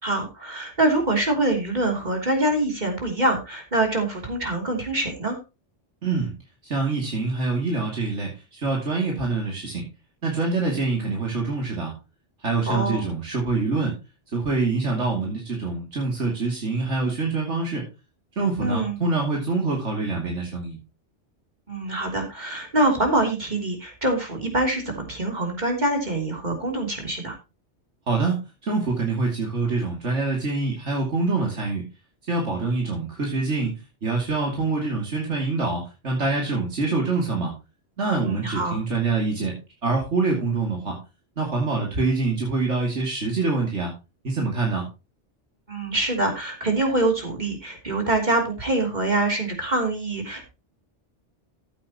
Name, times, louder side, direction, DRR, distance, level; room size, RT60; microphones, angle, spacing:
voice 1, 0.0-5.4 12.7-13.1 18.6-19.0 21.7-27.3 38.2-38.8 45.7-50.5, right 2 dB, 40° right, 3 dB, 3.4 m, -25 dB
voice 2, 6.0-6.3 6.6-9.8 10.2-11.9 12.4-14.0 14.3-17.8 18.4-20.8 28.1-28.4 28.6-31.8 32.3-37.5 38.0-39.5 39.8-41.0 41.4-43.9 44.2-44.8, right 3 dB, 80° right, -1 dB, 3.1 m, -25 dB
14.5 x 8.7 x 3.0 m, 0.28 s
omnidirectional pair, 1.2 m